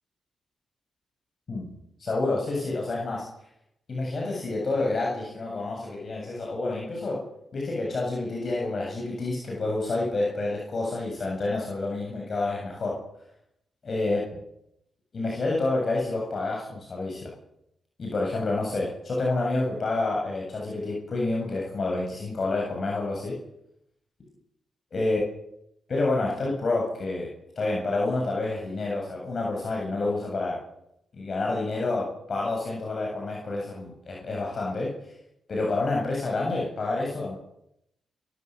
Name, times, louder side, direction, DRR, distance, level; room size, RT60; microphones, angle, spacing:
voice 1, 2.0-3.3 3.9-13.0 13.8-14.2 15.1-17.3 18.0-23.4 24.9-25.2 25.9-30.6 31.1-34.9 35.5-37.3, left 2 dB, 50° left, -2 dB, 7.8 m, -28 dB
29.0 x 14.0 x 7.8 m, 0.78 s
cardioid pair, 85°, 0 cm